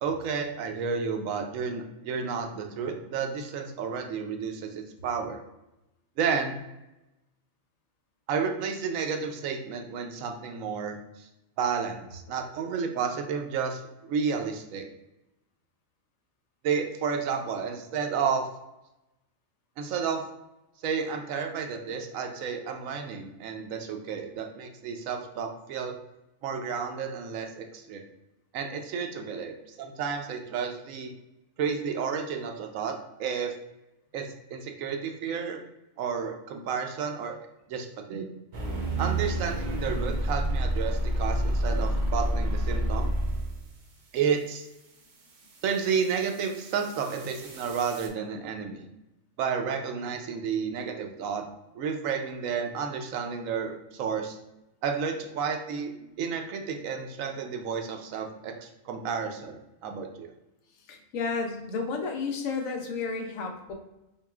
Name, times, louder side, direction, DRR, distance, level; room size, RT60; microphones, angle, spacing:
voice 1, 0.0-5.4 6.2-6.6 8.3-11.3 11.6-14.8 16.6-18.5 19.8-20.2 20.8-26.0 26.4-28.0 28.5-31.1 31.6-33.5 34.1-35.6 36.0-37.3 37.7-38.3 39.0-43.1 44.1-44.7 45.6-48.9 49.4-51.4 51.7-54.4 54.8-55.9 56.2-60.3, right 6 dB, 80° right, 4 dB, 1.0 m, -31 dB
sound 1, 38.5-43.7 45.5-48.1, right 1 dB, 55° right, 0.5 m, -29 dB
voice 2, 60.9-63.7, left 4 dB, 85° left, 3 dB, 1.1 m, -32 dB
5.3 x 2.4 x 2.4 m, 0.93 s
omnidirectional pair, 1.4 m